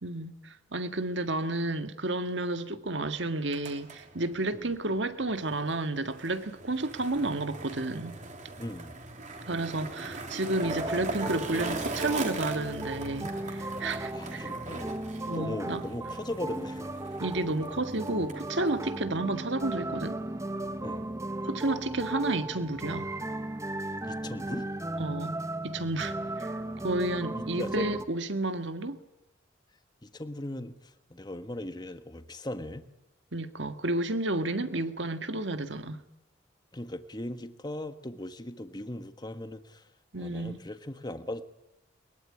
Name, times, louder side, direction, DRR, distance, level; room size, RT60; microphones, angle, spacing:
voice 1, 0.0-8.2 9.5-14.5 15.3-15.8 17.2-20.2 21.4-23.1 25.0-25.4 25.6-29.0 33.3-36.0 40.1-40.6, right 2 dB, 70° right, 1.8 m, -31 dB
Skateboard, 3.3-19.0, right 3 dB, 40° right, 3.3 m, -41 dB
voice 2, 8.6-8.9 14.1-14.9 15.3-16.9 20.8-21.1 24.1-24.7 27.3-27.9 30.0-32.8 36.7-39.9 40.2-41.4, left 1 dB, 20° left, 1.4 m, -38 dB
sound 1, 10.6-28.0, right 1 dB, 15° right, 1.1 m, -36 dB
22.5 x 22.0 x 10.0 m
head